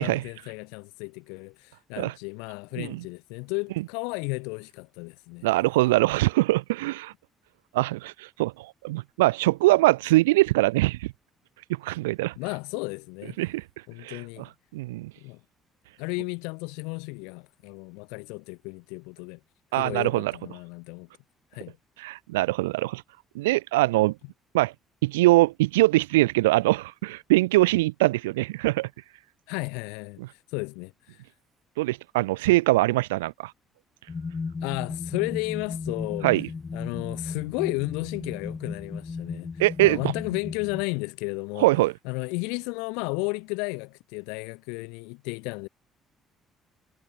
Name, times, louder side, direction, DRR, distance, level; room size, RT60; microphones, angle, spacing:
voice 1, 0.0-5.5 12.4-13.4 13.9-14.5 15.2-15.4 16.0-19.4 19.8-21.1 21.5-21.8 29.5-30.2 30.5-31.2 34.6-36.3 36.7-39.5 39.8-41.7 42.0-45.7, left 32 dB, 75° left, 0.6 m, -33 dB
voice 2, 5.4-7.1 7.7-11.1 11.8-12.3 13.4-13.6 14.0-14.2 14.7-15.1 19.7-20.3 22.0-23.0 23.3-24.1 24.5-24.7 25.0-28.9 30.2-30.3 31.8-33.5 36.2-36.5 39.6-40.0 41.6-41.9, right 19 dB, 80° right, 0.5 m, -22 dB
sound 1, 34.1-40.9, left 4 dB, 30° left, 1.6 m, -35 dB
hypercardioid pair, 50°, 0 cm